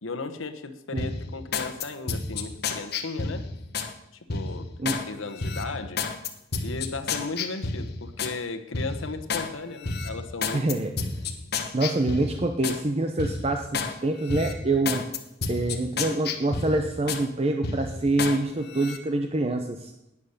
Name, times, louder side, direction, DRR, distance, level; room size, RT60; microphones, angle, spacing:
voice 1, 0.0-3.5 4.3-4.7 5.1-6.0 6.6-10.6, left 3 dB, 85° left, 9 dB, 1.1 m, -35 dB
sound 1, 1.0-3.9 4.3-5.0 5.4-8.4 8.7-9.5 9.8-12.8 13.2-13.9 14.3-17.3 17.6-18.4 18.7-19.0, left 4 dB, 55° left, 1.2 m, -31 dB
voice 2, 10.5-10.9 11.7-15.0 15.5-19.9, right 2 dB, 30° right, 5 dB, 0.8 m, -26 dB
11.0 x 9.7 x 6.7 m, 0.88 s
head